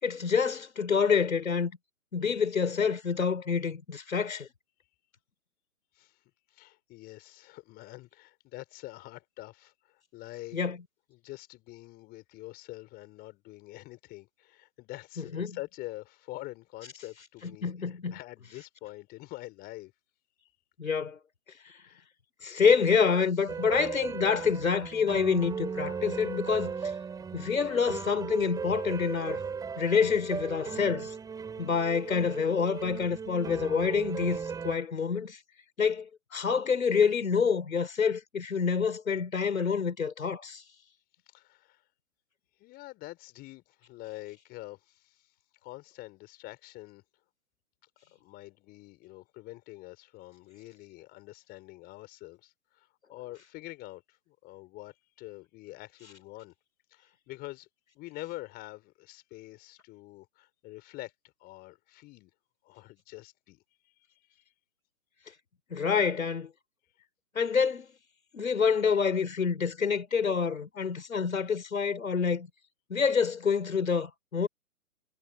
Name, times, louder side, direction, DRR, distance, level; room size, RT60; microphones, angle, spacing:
voice 1, 0.0-1.7 2.1-4.5 10.5-10.8 15.2-15.6 17.4-18.2 20.8-21.2 22.4-26.8 27.3-29.4 29.8-31.1 31.6-35.4 35.8-40.6 65.7-66.5 67.3-67.9 68.3-72.5 72.9-74.5, left 6 dB, 65° left, 4.0 m, -27 dB
voice 2, 6.5-10.6 11.1-19.9 21.8-22.0 41.3-41.8 42.6-45.3 45.6-47.0 48.1-56.5 56.9-57.7 57.9-62.3 62.6-63.9 64.3-64.4, left 19 dB, 20° left, 4.3 m, -46 dB
sound 1, 23.5-34.8, right 6 dB, 10° right, 4.2 m, -37 dB
figure-of-eight pair, 130°, 43 cm